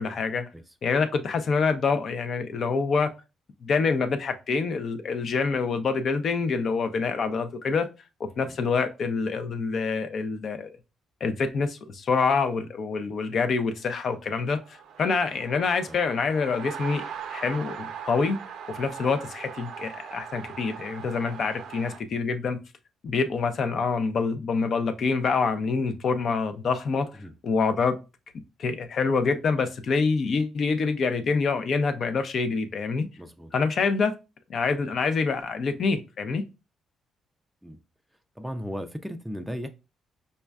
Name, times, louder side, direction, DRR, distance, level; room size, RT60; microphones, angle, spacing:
voice 1, 0.0-0.5 0.8-3.1 3.6-7.9 8.2-10.7 11.2-14.6 15.0-17.0 17.3-18.4 18.7-22.6 23.0-28.0 28.6-33.1 33.5-34.1 34.5-36.4, left 4 dB, 55° left, 0.5 m, -26 dB
sound 1, 14.4-22.0, right 7 dB, 80° right, 0.5 m, -40 dB
voice 2, 33.2-33.5 37.6-37.8 38.4-39.7, equal, 5° right, 0.3 m, -36 dB
5.2 x 2.2 x 2.2 m
cardioid pair, 90°, 0 cm